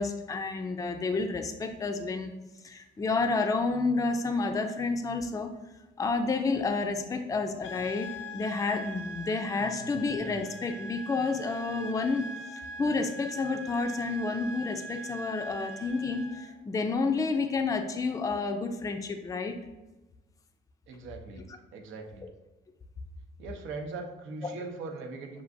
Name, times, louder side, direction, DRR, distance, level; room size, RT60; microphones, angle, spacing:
voice 1, 0.0-2.3 2.6-5.5 6.0-12.2 12.8-16.3 16.7-19.6, left 3 dB, 15° left, 5 dB, 0.4 m, -30 dB
sound 1, 7.6-16.6, right 1 dB, 85° left, 0.4 m, -42 dB
voice 2, 9.6-10.1 20.9-21.5 21.7-22.2 23.4-25.4, right 3 dB, 85° right, 4 dB, 0.7 m, -41 dB
6.9 x 2.5 x 2.6 m, 1.1 s
cardioid pair, 90°, 20 cm